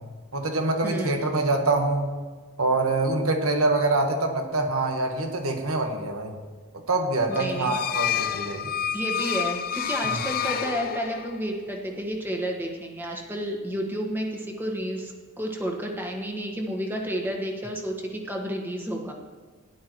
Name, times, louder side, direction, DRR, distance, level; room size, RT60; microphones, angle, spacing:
voice 1, 0.3-2.1 2.6-6.3 6.9-8.7 10.0-10.2, right 2 dB, 80° right, 3 dB, 1.5 m, -25 dB
voice 2, 0.8-1.3 7.3-7.8 8.2-8.4 8.9-19.1, equal, 10° right, 1 dB, 1.5 m, -31 dB
sound 1, 7.3-11.5, left 9 dB, 45° left, 0.5 m, -29 dB
17.5 x 11.5 x 3.1 m, 1.4 s
head